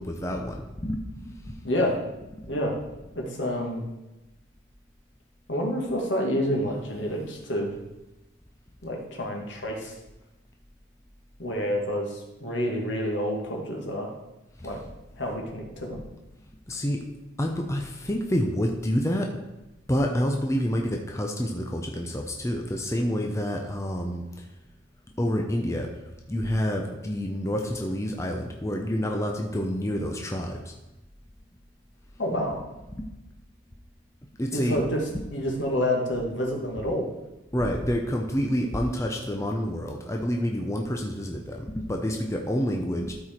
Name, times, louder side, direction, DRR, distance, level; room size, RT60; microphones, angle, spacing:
voice 1, 0.0-1.6 2.4-2.5 14.6-14.7 16.7-17.1 17.4-19.4 19.9-24.5 25.2-26.0 26.3-30.7 33.0-33.1 34.4-34.8 37.5-43.1, equal, 15° left, 2 dB, 0.7 m, -28 dB
voice 2, 1.6-2.0 2.5-2.8 3.2-3.8 5.5-7.7 8.8-9.9 11.4-14.1 14.6-14.8 15.2-16.0 32.2-32.6 34.5-34.9 35.3-37.1, equal, 75° left, 0 dB, 2.0 m, -28 dB
12.0 x 4.7 x 4.5 m, 0.99 s
head